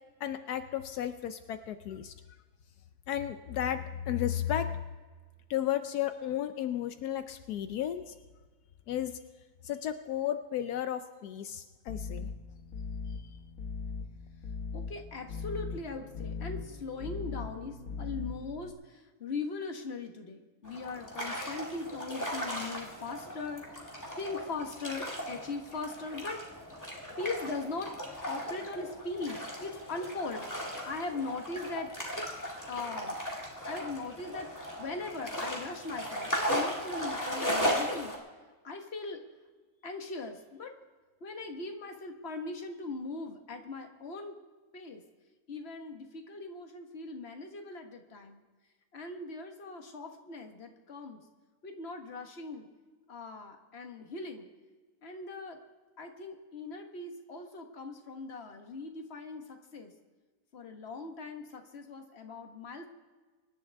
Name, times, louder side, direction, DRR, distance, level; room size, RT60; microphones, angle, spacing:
voice 1, 0.2-2.1 3.1-4.7 5.5-8.1 8.9-9.2 9.6-12.3, left 11 dB, 80° left, 10 dB, 1.2 m, -33 dB
sound 1, 11.9-18.7, left 5 dB, 65° left, 1.5 m, -40 dB
voice 2, 14.7-26.4 27.2-27.9 28.2-30.5 30.8-31.9 32.7-33.2 33.7-34.5 34.8-38.2 38.6-39.2 39.8-40.8 41.2-44.4 44.7-45.0 45.5-48.4 48.9-51.2 51.6-52.7 53.1-54.5 55.0-55.6 56.0-59.9 60.5-62.9, left 3 dB, 45° left, 5 dB, 1.6 m, -40 dB
sound 2, 20.6-38.2, equal, 10° left, 2.1 m, -37 dB
24.5 x 11.0 x 3.4 m, 1.4 s
omnidirectional pair, 1.6 m